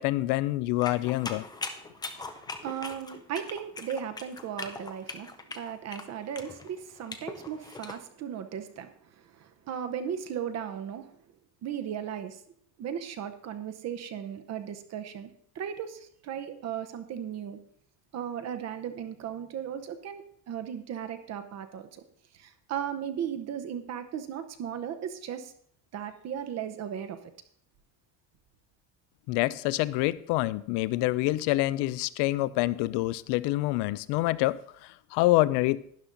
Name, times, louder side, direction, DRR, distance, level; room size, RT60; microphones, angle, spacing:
voice 1, 0.0-1.4 29.3-35.9, left 18 dB, 60° left, 0.6 m, -27 dB
sound 1, 0.8-8.0, left 3 dB, 10° left, 0.4 m, -40 dB
voice 2, 2.1-11.2 11.6-12.4 12.8-15.3 15.5-17.6 18.1-22.0 22.3-25.5 25.9-27.2, right 8 dB, 35° right, 0.8 m, -36 dB
12.0 x 9.8 x 3.9 m
cardioid pair, 160°, 45 cm